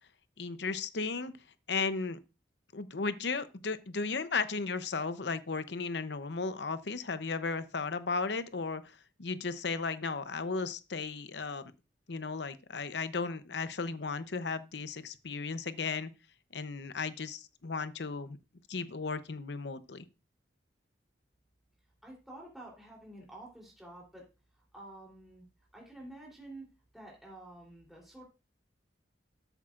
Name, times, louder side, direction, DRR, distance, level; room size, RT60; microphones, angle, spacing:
voice 1, 0.4-1.3 1.7-2.2 2.7-11.7 12.1-16.1 16.5-18.4 18.7-20.0, left 4 dB, 70° left, 0.8 m, -35 dB
voice 2, 22.0-24.2 24.5-25.4 25.7-26.7 26.9-28.2, right 1 dB, ahead, 3.4 m, -49 dB
13.5 x 8.2 x 2.5 m
head